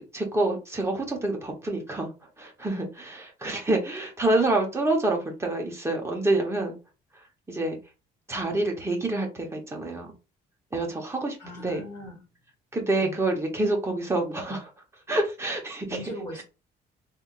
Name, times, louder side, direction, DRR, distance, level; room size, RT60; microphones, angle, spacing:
voice 1, 0.1-2.1 2.4-6.7 7.5-7.8 8.3-10.1 10.7-11.4 11.6-11.8 12.7-14.7 15.1-15.9, right 2 dB, 15° right, 1.1 m, -27 dB
voice 2, 11.4-12.2 13.0-13.2 15.9-16.4, equal, 15° left, 1.9 m, -38 dB
3.5 x 2.8 x 2.5 m
cardioid pair, 110°, 17 cm